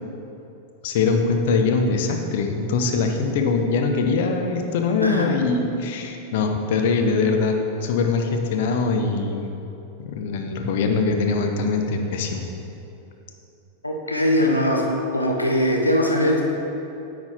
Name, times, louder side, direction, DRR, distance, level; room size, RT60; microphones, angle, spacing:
voice 1, 0.8-9.6 10.0-12.4, left 4 dB, 55° left, 4 dB, 0.7 m, -22 dB
voice 2, 13.8-14.9 15.1-16.4, left 1 dB, 85° left, 0 dB, 0.9 m, -21 dB
9.6 x 4.3 x 4.4 m, 2.8 s
figure-of-eight pair, 90°, 0 cm